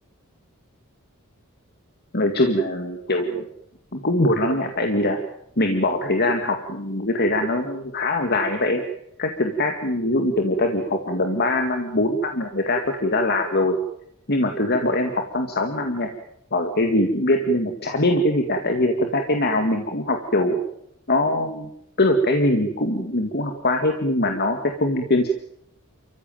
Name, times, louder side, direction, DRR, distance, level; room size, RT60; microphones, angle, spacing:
voice 1, 2.1-3.4 3.9-5.2 5.6-8.8 9.2-13.8 14.3-16.1 16.5-20.6 21.1-21.7 22.0-25.3, left 1 dB, 50° left, 5 dB, 2.1 m, -22 dB
29.0 x 15.0 x 9.2 m, 0.77 s
head